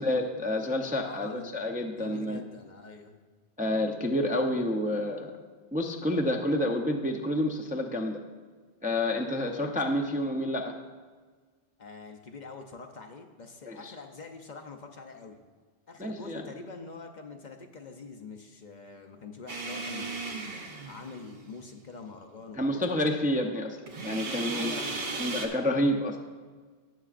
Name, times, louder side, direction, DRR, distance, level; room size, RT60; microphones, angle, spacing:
voice 1, 0.0-2.4 3.6-5.3 5.7-8.2 8.8-10.7 13.7-13.8 16.0-16.5 22.6-23.8 24.0-24.8 25.2-26.2, left 1 dB, 10° right, 1 dB, 0.4 m, -29 dB
voice 2, 1.0-1.6 1.9-3.2 11.8-15.4 15.9-20.4 20.9-23.0 24.5-25.4, left 4 dB, 50° left, 4 dB, 0.7 m, -45 dB
sound 1, 19.5-21.5 23.9-25.5, right 3 dB, 60° right, 1.1 m, -36 dB
17.0 x 6.8 x 2.5 m, 1.5 s
omnidirectional pair, 1.1 m